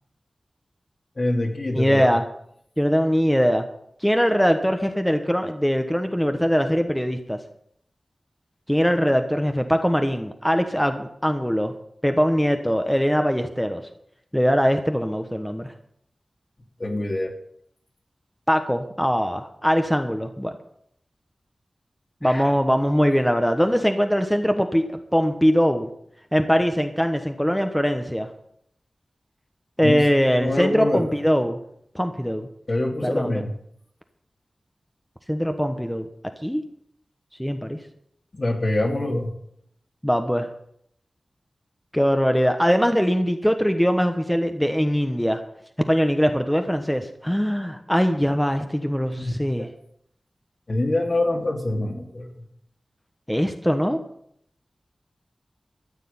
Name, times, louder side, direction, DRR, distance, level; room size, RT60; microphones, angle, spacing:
voice 1, 1.2-2.1 16.8-17.3 22.2-22.5 29.8-30.0 30.4-31.0 32.7-33.5 38.3-39.3 49.1-49.7 50.7-52.4, left 1 dB, 50° left, 2 dB, 3.0 m, -25 dB
voice 2, 1.7-2.2 2.8-3.6 4.0-7.4 8.7-11.7 12.0-13.8 14.3-15.7 18.5-20.5 22.2-25.9 26.3-28.3 29.8-31.6 31.9-32.5 33.0-33.4 35.3-36.1 36.4-36.6 37.4-37.8 40.0-40.5 41.9-45.4 45.9-49.7 53.3-54.0, equal, 5° left, 6 dB, 1.2 m, -21 dB
14.0 x 6.6 x 9.4 m, 0.70 s
wide cardioid pair, 55°, 0 cm